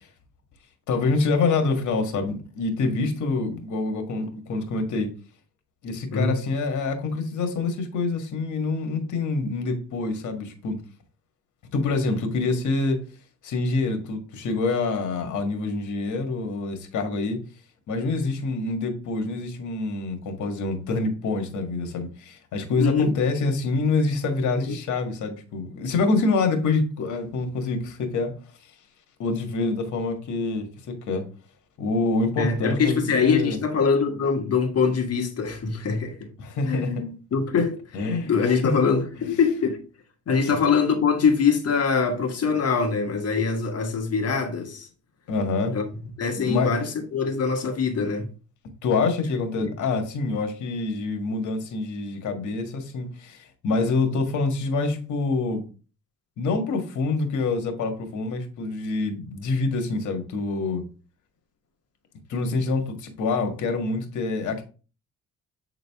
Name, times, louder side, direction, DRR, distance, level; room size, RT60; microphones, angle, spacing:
voice 1, 0.9-5.1 5.8-10.8 11.7-13.0 13.4-17.4 17.9-28.3 29.2-31.3 31.8-33.6 36.4-36.9 37.9-38.7 40.4-40.5 45.3-45.7 46.3-46.7 48.8-55.6 56.4-60.8 62.3-64.6, left 3 dB, 75° left, 1.6 m, -26 dB
voice 2, 22.8-23.1 24.7-24.8 32.4-36.3 36.7-37.8 38.2-39.8 40.3-44.9 45.7-45.9 46.2-48.3 49.6-49.7, left 5 dB, 55° left, 1.6 m, -23 dB
7.8 x 3.9 x 3.5 m
cardioid pair, 90°, 30 cm